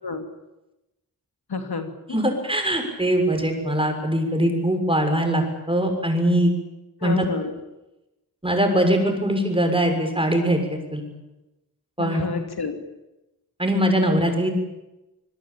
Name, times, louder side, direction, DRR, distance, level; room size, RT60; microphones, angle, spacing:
voice 1, 1.5-2.2 7.0-7.5 12.0-12.8, left 4 dB, 85° left, 6 dB, 2.9 m, -29 dB
voice 2, 2.1-6.5 7.0-7.3 8.4-11.0 12.0-12.2 13.6-14.5, right 1 dB, 15° right, 4 dB, 6.7 m, -22 dB
26.5 x 21.0 x 8.8 m, 0.98 s
wide cardioid pair, 70°, 37 cm